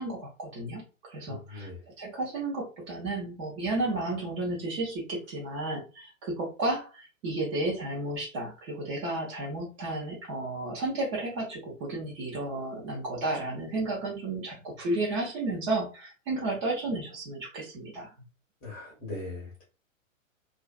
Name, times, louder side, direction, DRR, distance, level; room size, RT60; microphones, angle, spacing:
voice 1, 0.0-1.7 2.0-18.1, right 2 dB, 25° right, -2 dB, 0.6 m, -32 dB
voice 2, 1.3-1.8 18.6-19.6, left 2 dB, 25° left, -3 dB, 0.7 m, -40 dB
2.4 x 2.3 x 2.2 m, 0.32 s
figure-of-eight pair, 110°, 40 cm